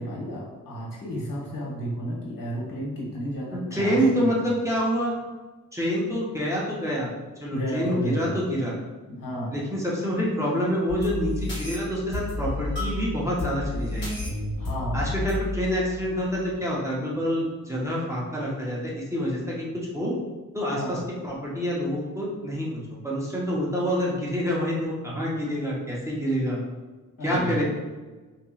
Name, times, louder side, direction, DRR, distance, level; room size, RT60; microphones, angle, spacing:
voice 1, 0.0-4.4 7.5-8.4 9.1-9.5 14.6-15.1 20.7-21.0 27.2-27.6, equal, 80° left, -5 dB, 1.3 m, -32 dB
voice 2, 3.5-5.1 5.7-7.1 7.4-8.7 9.5-14.1 14.9-20.1 20.5-22.7 23.0-26.6 27.2-27.6, equal, 10° right, -6 dB, 0.5 m, -27 dB
sound 1, 10.9-16.5, left 2 dB, 35° left, 1.3 m, -32 dB
4.1 x 2.8 x 2.3 m, 1.3 s
wide cardioid pair, 165°, 33 cm